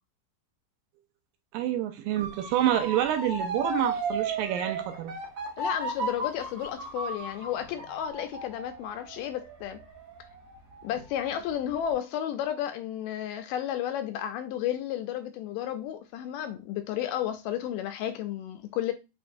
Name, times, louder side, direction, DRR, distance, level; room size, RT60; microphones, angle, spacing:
voice 1, 1.5-5.1, right 12 dB, 85° right, 2.3 m, -28 dB
Motor vehicle (road) / Siren, 2.2-11.1 11.5-11.9, right 2 dB, 65° right, 2.8 m, -35 dB
voice 2, 5.6-9.8 10.8-18.9, left 11 dB, 80° left, 2.0 m, -32 dB
5.7 x 3.0 x 2.6 m
omnidirectional pair, 4.0 m